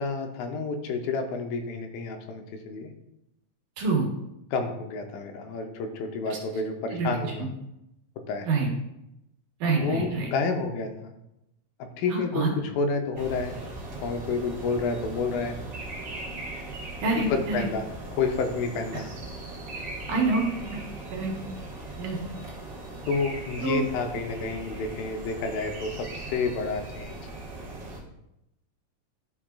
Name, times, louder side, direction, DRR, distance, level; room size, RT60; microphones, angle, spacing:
voice 1, 0.0-2.9 4.5-7.5 8.3-8.5 9.8-11.1 11.8-13.6 14.0-15.6 17.2-17.9 18.2-19.1 23.1-27.2, left 4 dB, 85° left, 5 dB, 2.4 m, -29 dB
voice 2, 3.8-4.1 7.0-7.1 7.4-7.5 8.4-8.7 9.6-10.3 12.1-12.5 17.0-17.7 20.1-20.8 21.1-21.3 22.0-22.2 23.6-23.8, right 3 dB, 65° right, -1 dB, 2.5 m, -26 dB
sound 1, 13.2-28.0, right 2 dB, 45° right, 1.4 m, -39 dB
11.5 x 5.0 x 2.3 m, 0.86 s
omnidirectional pair, 4.2 m